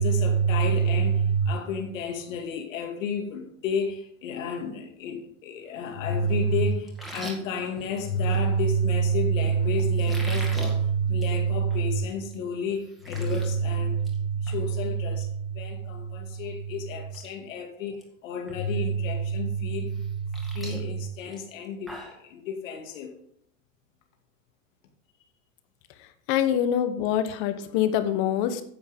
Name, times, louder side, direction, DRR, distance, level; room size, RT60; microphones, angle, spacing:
voice 1, 0.0-22.0 22.2-23.1, right 3 dB, 70° left, 2.3 m, -27 dB
sound 1, 6.9-8.5 10.0-10.7 11.1-11.4 11.7-11.8 12.3-12.4 12.7-13.5 13.8-14.2 14.5-14.6 16.4-16.5 17.0-17.3 17.6-18.0 18.5-18.6 19.9-22.2, equal, ahead, 1.9 m, -41 dB
voice 2, 26.3-28.6, left 10 dB, 35° left, 1.0 m, -25 dB
9.9 x 7.6 x 5.2 m
supercardioid pair, 160°, 40 cm